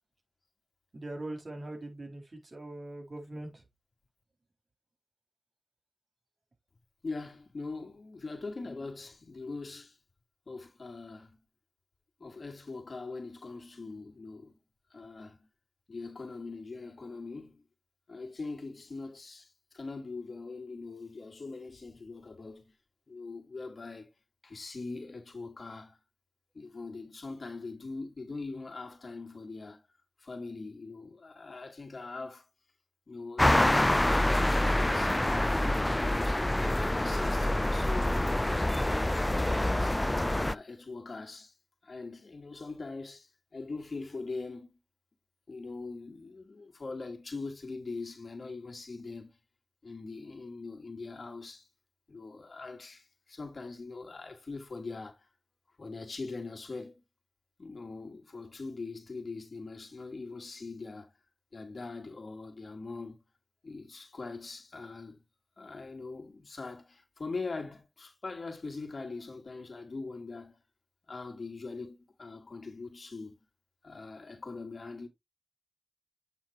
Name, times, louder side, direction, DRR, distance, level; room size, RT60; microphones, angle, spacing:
voice 1, 0.9-3.5, right 1 dB, 60° right, 4.0 m, -41 dB
voice 2, 7.0-10.0 10.5-11.4 12.2-14.6 14.9-15.5 15.9-17.6 18.1-22.7 23.1-24.1 24.4-26.0 26.5-29.8 30.2-32.5 33.1-36.4 36.8-38.7 39.3-41.6 41.8-44.8 45.5-49.3 49.8-51.7 52.1-55.3 55.8-57.0 57.6-61.1 61.5-63.2 63.6-65.2 65.6-70.6 71.1-73.4 73.8-75.1, left 3 dB, 65° left, 2.3 m, -42 dB
sound 1, 33.4-40.5, left 1 dB, 20° left, 0.3 m, -26 dB
8.6 x 3.9 x 4.4 m
cardioid pair, 45°, 0 cm